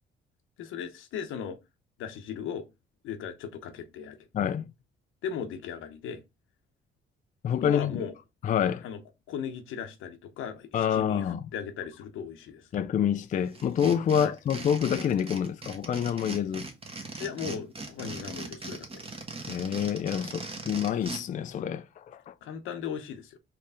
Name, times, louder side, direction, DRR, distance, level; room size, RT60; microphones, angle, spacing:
voice 1, 0.6-1.6 2.0-2.7 3.0-4.2 5.2-6.2 7.6-8.1 8.8-9.0 9.3-12.7 14.2-14.3 17.2-19.0 22.4-23.4, left 7 dB, 85° left, 0.9 m, -37 dB
voice 2, 4.3-4.7 7.4-8.1 8.4-8.8 10.7-11.4 12.7-16.7 19.5-22.3, left 8 dB, 40° left, 0.4 m, -27 dB
sound 1, 13.5-21.2, right 3 dB, 30° right, 1.3 m, -39 dB
4.3 x 3.1 x 3.5 m
cardioid pair, 90°, 20 cm